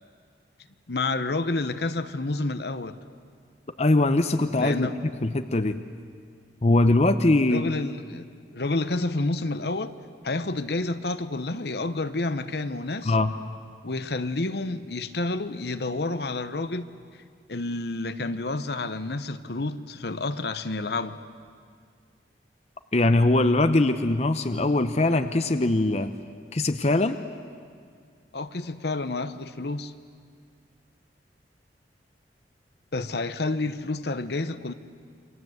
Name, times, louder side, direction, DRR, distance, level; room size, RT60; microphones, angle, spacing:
voice 1, 0.9-3.0 4.6-5.0 7.5-8.3 8.5-9.9 10.2-13.1 13.8-16.9 17.5-21.2 28.3-29.9 32.9-34.7, left 2 dB, 60° left, 1.0 m, -29 dB
voice 2, 3.8-4.9 5.2-5.8 6.6-7.7 13.1-13.3 22.9-26.1 26.5-27.2, left 2 dB, 35° left, 0.8 m, -21 dB
28.5 x 24.0 x 8.0 m
head